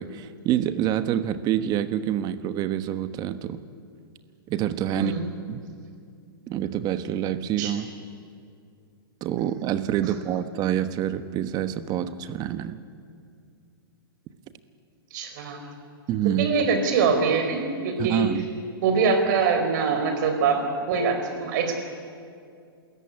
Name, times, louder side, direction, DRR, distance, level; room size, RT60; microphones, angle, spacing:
voice 1, 0.0-3.6 4.5-5.1 5.5-5.6 6.5-7.9 9.2-12.8 16.1-16.5 18.0-18.4, right 11 dB, 30° right, 12 dB, 1.2 m, -26 dB
voice 2, 4.9-5.3 7.6-7.7 15.1-15.7 16.4-18.3 18.8-21.7, right 5 dB, 50° right, 6 dB, 4.7 m, -24 dB
26.0 x 14.0 x 9.7 m, 2.3 s
hypercardioid pair, 120°, 13 cm